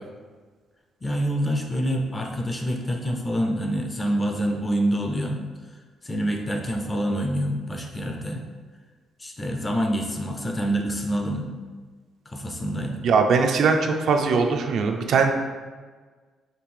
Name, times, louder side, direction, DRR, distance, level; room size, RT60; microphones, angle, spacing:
voice 1, 1.0-5.4 6.0-8.5 9.2-11.5 12.3-13.0, equal, 15° left, 2 dB, 0.4 m, -26 dB
voice 2, 13.0-15.3, right 5 dB, 55° right, 4 dB, 0.4 m, -20 dB
5.1 x 2.7 x 3.2 m, 1.4 s
cardioid pair, 170°, 0 cm